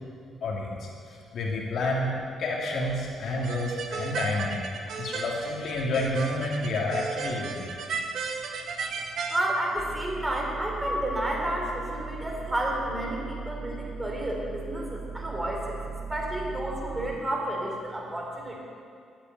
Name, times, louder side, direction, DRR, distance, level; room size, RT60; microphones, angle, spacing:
voice 1, 0.4-2.1 2.4-4.6 5.0-7.7, left 2 dB, 65° left, -3 dB, 2.2 m, -29 dB
sound 1, 3.4-9.4, right 5 dB, 65° right, 1.2 m, -35 dB
voice 2, 9.3-15.8 16.1-18.6, right 1 dB, 15° right, -1 dB, 3.5 m, -31 dB
sound 2, 9.8-17.2, right 5 dB, 35° right, 1.5 m, -38 dB
11.0 x 8.7 x 9.0 m, 2.3 s
cardioid pair, 90°, 0 cm